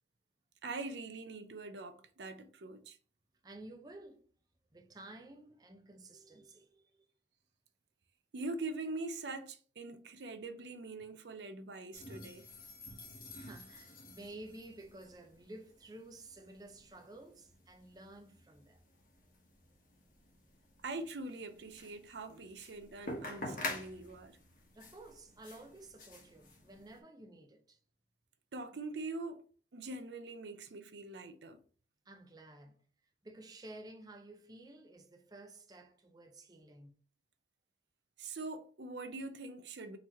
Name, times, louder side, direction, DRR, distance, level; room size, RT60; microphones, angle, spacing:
voice 1, 0.6-3.0 8.3-12.5 20.8-24.4 28.5-29.4 29.7-31.6 38.2-40.0, right 3 dB, 75° right, 0.6 m, -43 dB
voice 2, 3.4-4.2 4.7-6.9 13.4-18.8 24.7-27.8 32.1-32.8 33.2-37.0, right 2 dB, 20° right, 0.5 m, -53 dB
sound 1, 11.9-27.0, left 2 dB, 50° left, 1.2 m, -48 dB
3.9 x 3.0 x 4.2 m
head